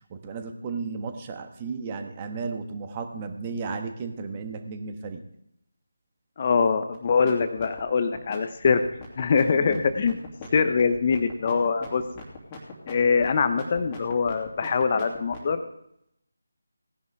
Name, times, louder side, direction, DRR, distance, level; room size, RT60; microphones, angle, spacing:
voice 1, 0.1-5.2 9.5-9.8, right 4 dB, 25° right, 6 dB, 1.3 m, -34 dB
voice 2, 6.4-8.8 9.2-10.2 10.5-12.0 12.9-15.6, left 5 dB, 35° left, 10 dB, 0.9 m, -23 dB
sound 1, 6.9-7.3 7.6-15.5, left 5 dB, 20° left, 2.7 m, -41 dB
18.0 x 10.5 x 3.5 m, 0.77 s
figure-of-eight pair, 160°, 0 cm